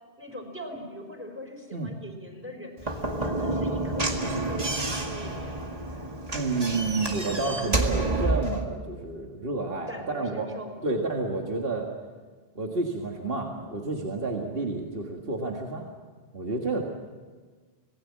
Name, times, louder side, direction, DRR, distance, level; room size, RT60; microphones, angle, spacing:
voice 1, 0.2-5.7 6.0-6.1 9.9-10.8, equal, 10° right, 3 dB, 4.4 m, -41 dB
Slam / Knock, 2.8-8.6, right 2 dB, 40° right, 2.1 m, -29 dB
voice 2, 6.3-10.5 10.8-11.9 12.6-15.9 16.3-16.8, right 3 dB, 65° right, 1 dB, 2.0 m, -30 dB
26.0 x 19.0 x 7.4 m, 1.4 s
omnidirectional pair, 1.0 m